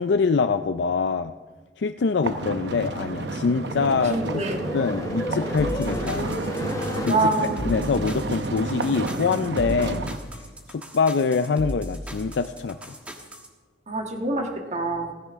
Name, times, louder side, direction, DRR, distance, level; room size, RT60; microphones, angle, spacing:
voice 1, 0.0-1.3 1.8-4.2 4.7-6.4 7.0-10.1 10.7-12.8, left 5 dB, 75° left, 9 dB, 0.4 m, -24 dB
sound 1, 2.2-10.2, right 2 dB, 75° right, 0.8 m, -31 dB
sound 2, 2.5-7.2, equal, 20° left, 1.2 m, -34 dB
voice 2, 4.1-4.6 7.1-7.6 13.9-15.1, right 2 dB, 40° right, 3 dB, 1.5 m, -25 dB
sound 3, 5.6-13.5, equal, 10° right, 1.3 m, -36 dB
17.0 x 15.5 x 3.6 m, 1.4 s
head